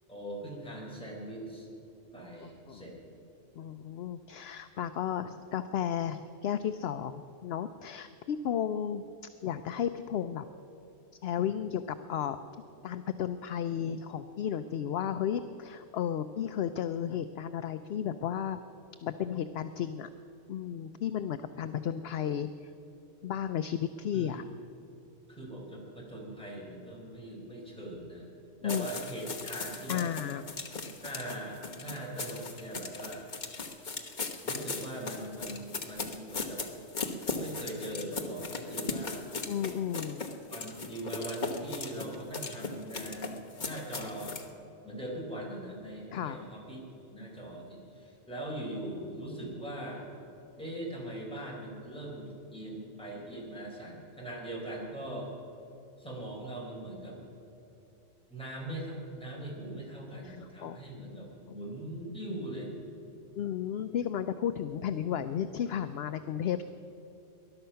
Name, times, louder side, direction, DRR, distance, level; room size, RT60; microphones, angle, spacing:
voice 1, 0.1-1.7 2.1-3.0 24.1-24.3 25.3-28.3 28.6-30.1 31.0-33.3 34.4-36.6 37.4-39.3 40.5-44.4 44.8-46.8 47.1-50.1 50.6-55.3 56.0-57.2 58.3-62.7, right 1 dB, 5° left, -3 dB, 4.0 m, -41 dB
voice 2, 2.4-2.8 3.6-9.0 9.4-10.4 11.2-11.8 12.1-12.4 12.8-18.6 19.0-20.1 20.5-22.7 23.2-24.4 28.6-28.9 29.9-30.4 39.5-40.2 46.1-46.4 60.2-60.8 63.4-66.6, left 9 dB, 65° left, 10 dB, 0.7 m, -33 dB
sound 1, 28.7-44.5, left 4 dB, 40° left, 1.2 m, -38 dB
20.0 x 11.5 x 5.7 m, 2.9 s
omnidirectional pair, 1.3 m